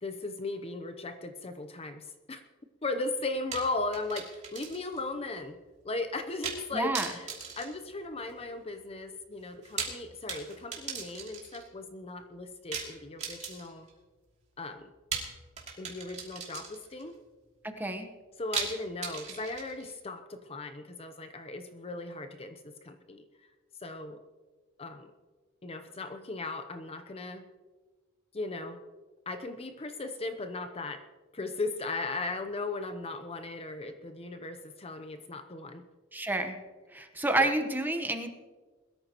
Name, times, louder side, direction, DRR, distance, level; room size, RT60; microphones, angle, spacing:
voice 1, 0.0-2.4 2.8-5.6 5.8-13.9 14.6-14.9 15.8-17.2 18.4-23.2 23.8-24.2 24.8-25.1 25.6-27.4 28.3-28.8 29.3-31.0 31.3-35.8 37.4-37.5, left 2 dB, 30° left, 7 dB, 0.7 m, -37 dB
sound 1, 3.5-5.0 5.3-5.4 6.4-6.7 6.9-8.5 9.5-11.7 12.7-13.9 15.1-17.0 18.5-19.9, right 5 dB, 35° right, 2.8 m, -38 dB
voice 2, 6.7-7.1 17.6-18.1 36.1-36.6 36.9-38.3, right 2 dB, 10° right, 6 dB, 1.1 m, -29 dB
21.5 x 13.5 x 3.0 m, 1.3 s
head